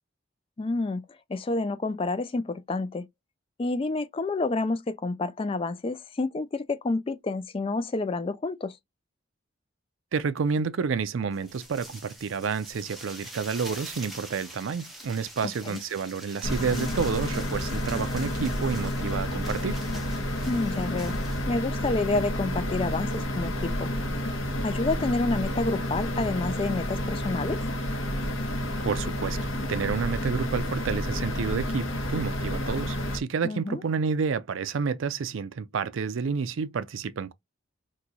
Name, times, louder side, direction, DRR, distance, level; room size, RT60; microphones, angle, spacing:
voice 1, 0.6-1.0 1.3-3.1 3.6-8.8 15.6-15.8 20.4-21.2 21.5-23.9 24.6-27.6 33.4-33.8, left 3 dB, 25° left, 0.3 m, -29 dB
voice 2, 10.1-19.8 28.8-29.4 29.7-37.3, right 5 dB, 75° right, 0.4 m, -29 dB
sound 1, 11.3-21.4, right 1 dB, ahead, 0.8 m, -45 dB
sound 2, 16.4-33.2, left 1 dB, 80° left, 0.9 m, -30 dB
3.0 x 2.2 x 3.8 m
head